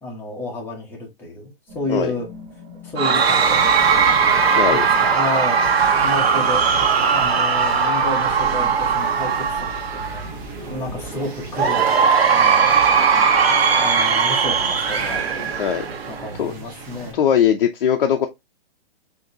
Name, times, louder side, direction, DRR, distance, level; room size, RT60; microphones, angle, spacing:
voice 1, 0.0-2.3 2.8-3.6 4.7-6.7 7.1-10.3 10.6-12.8 13.8-15.5 16.1-17.2, left 2 dB, 5° left, 0.9 m, -31 dB
sound 1, 1.7-10.5, right 1 dB, 40° right, 2.9 m, -40 dB
Cheering / Crowd, 3.0-10.3 11.5-16.3, right 6 dB, 75° right, 1.2 m, -18 dB
sound 2, 3.1-17.1, right 3 dB, 20° right, 0.9 m, -35 dB
voice 2, 4.6-4.9 15.6-15.9 16.4-16.5 17.1-18.3, left 9 dB, 55° left, 0.7 m, -19 dB
6.4 x 2.9 x 2.8 m
hypercardioid pair, 170°, 31 cm